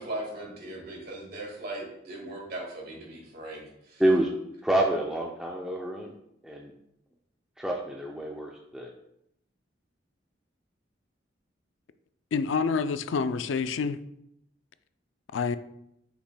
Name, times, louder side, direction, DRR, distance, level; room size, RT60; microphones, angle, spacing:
voice 1, 0.0-4.0, right 1 dB, 55° right, -1 dB, 1.9 m, -38 dB
voice 2, 4.6-6.1 6.4-6.7 7.6-8.9, right 1 dB, 5° right, -1 dB, 0.5 m, -27 dB
voice 3, 12.3-14.0 15.3-15.6, left 5 dB, 85° left, 12 dB, 0.4 m, -27 dB
8.2 x 6.0 x 2.2 m, 0.79 s
head